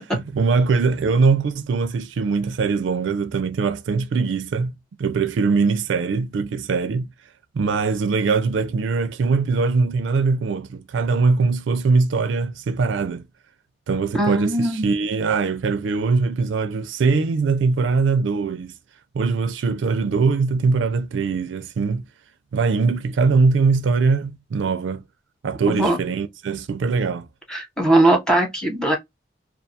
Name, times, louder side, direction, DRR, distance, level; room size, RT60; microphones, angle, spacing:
voice 1, 0.1-4.7 5.0-7.1 7.5-13.2 13.9-18.7 19.1-22.1 22.5-25.0 25.4-27.3, right 4 dB, 85° right, 0.4 m, -21 dB
voice 2, 14.1-14.9 25.7-26.0 27.5-29.0, right 1 dB, 5° left, 0.9 m, -19 dB
2.3 x 2.3 x 2.7 m
head